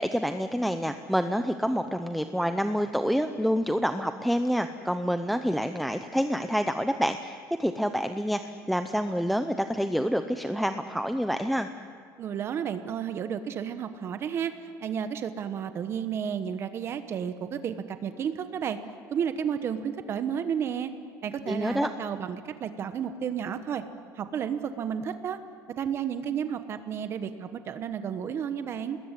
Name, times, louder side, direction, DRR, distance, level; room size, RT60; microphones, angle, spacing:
voice 1, 0.0-11.7 21.5-21.9, equal, ahead, 8 dB, 0.7 m, -27 dB
voice 2, 12.2-14.5 14.8-18.8 19.1-20.9 21.2-23.8 24.2-25.4 25.8-29.0, right 8 dB, 35° right, 10 dB, 1.1 m, -32 dB
27.5 x 20.5 x 9.8 m, 2.3 s
cardioid pair, 160°, 7 cm